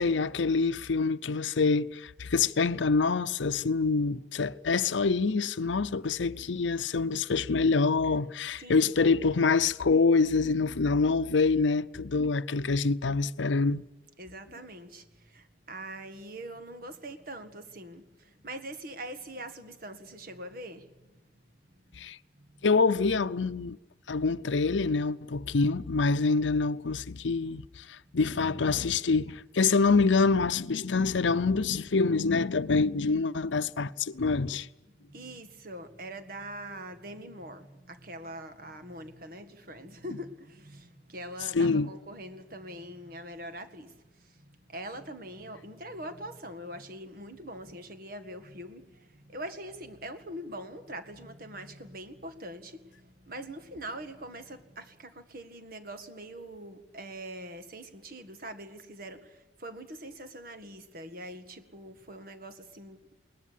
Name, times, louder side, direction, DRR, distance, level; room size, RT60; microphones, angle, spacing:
voice 1, 0.0-13.8 22.0-22.2 22.6-23.8 24.1-34.7 41.5-41.9, left 4 dB, 90° left, 0.7 m, -26 dB
voice 2, 8.6-8.9 14.2-21.2 21.7-22.8 29.3-29.4 34.9-63.2, right 1 dB, 50° right, 1.9 m, -43 dB
21.0 x 20.0 x 8.4 m
head